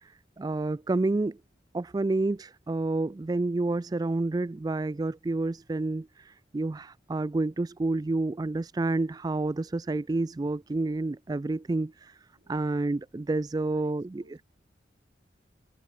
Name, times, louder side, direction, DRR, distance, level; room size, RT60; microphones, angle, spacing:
voice 1, 0.0-1.4 1.7-12.2 12.5-14.2, right 2 dB, 20° right, 0.3 m, -29 dB
voice 2, 12.3-12.9 13.7-14.4, right 1 dB, 65° right, 4.9 m, -62 dB
open air
head